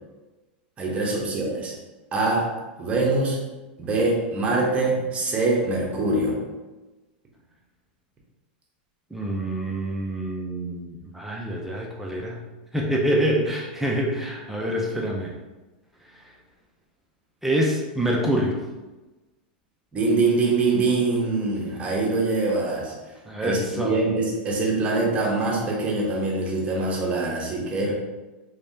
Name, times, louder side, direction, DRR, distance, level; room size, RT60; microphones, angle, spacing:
voice 1, 0.8-1.7 2.1-2.4 2.8-3.4 3.8-6.4 19.9-22.9 23.4-27.9, right 3 dB, 25° right, -2 dB, 1.0 m, -24 dB
voice 2, 9.1-12.4 12.7-15.3 17.4-18.6 23.3-24.0 27.8-27.9, right 1 dB, 5° right, -2 dB, 0.5 m, -26 dB
3.3 x 3.2 x 2.7 m, 1.1 s
hypercardioid pair, 125°, 6 cm